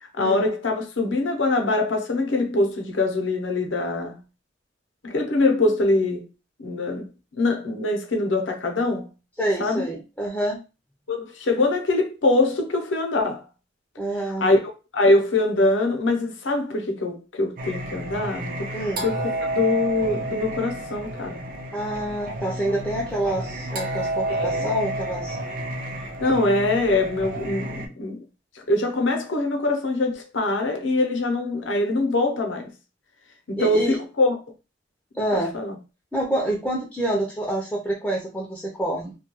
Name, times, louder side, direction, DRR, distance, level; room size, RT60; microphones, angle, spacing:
voice 1, 0.0-4.2 5.0-6.3 6.6-7.1 7.3-9.1 9.6-9.9 11.1-13.4 14.4-14.6 14.9-19.2 19.5-21.4 24.3-24.7 26.0-28.2 28.7-32.7 33.5-34.4 35.3-35.7, left 2 dB, 80° left, 0.7 m, -23 dB
voice 2, 9.4-10.6 14.0-14.5 18.7-19.0 21.7-25.4 33.6-34.0 35.2-35.5 36.1-39.1, right 1 dB, 5° left, 0.4 m, -27 dB
Singing, 17.6-27.9, right 1 dB, 50° right, 0.4 m, -30 dB
2.3 x 2.2 x 2.9 m
head